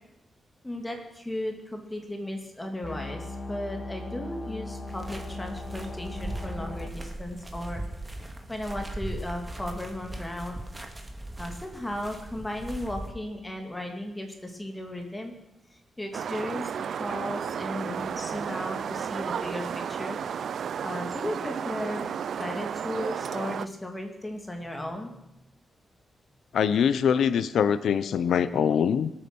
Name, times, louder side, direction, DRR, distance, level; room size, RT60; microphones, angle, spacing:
voice 1, 0.6-7.8 8.5-10.6 11.4-15.3 15.7-20.2 20.8-22.1 22.4-25.3, left 1 dB, 10° left, 3 dB, 2.4 m, -35 dB
sound 1, 2.8-6.9, left 2 dB, 30° left, 1.3 m, -38 dB
sound 2, 4.9-13.1, right 1 dB, 15° right, 2.0 m, -39 dB
sound 3, 16.1-23.7, right 7 dB, 70° right, 0.5 m, -33 dB
voice 2, 26.5-29.1, left 7 dB, 90° left, 13 dB, 0.8 m, -23 dB
25.5 x 8.9 x 6.2 m, 0.89 s
wide cardioid pair, 130°, 0 cm